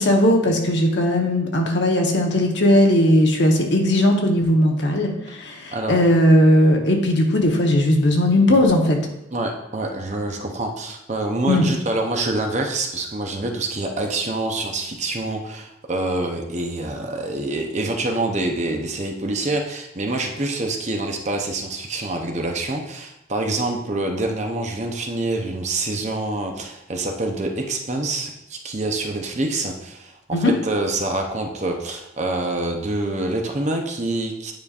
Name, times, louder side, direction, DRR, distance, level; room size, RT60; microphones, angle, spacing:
voice 1, 0.0-9.0 11.5-11.7 30.3-30.5, left 1 dB, 60° left, 2 dB, 1.0 m, -18 dB
voice 2, 9.3-34.5, right 2 dB, 35° right, 3 dB, 0.7 m, -26 dB
9.3 x 5.1 x 2.4 m, 0.86 s
head